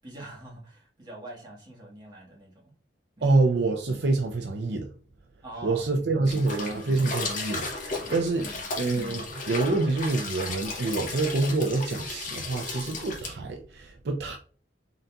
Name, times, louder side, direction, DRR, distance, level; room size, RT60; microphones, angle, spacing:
voice 1, 0.0-2.7 3.2-3.4 5.4-6.7 7.9-8.7, right 1 dB, 25° right, 1.5 m, -45 dB
voice 2, 3.2-4.9 5.6-7.7 8.1-8.5 8.8-14.4, right 3 dB, 65° right, 0.5 m, -26 dB
sound 1, 6.2-13.3, left 3 dB, 45° left, 0.8 m, -35 dB
3.9 x 3.9 x 2.3 m
head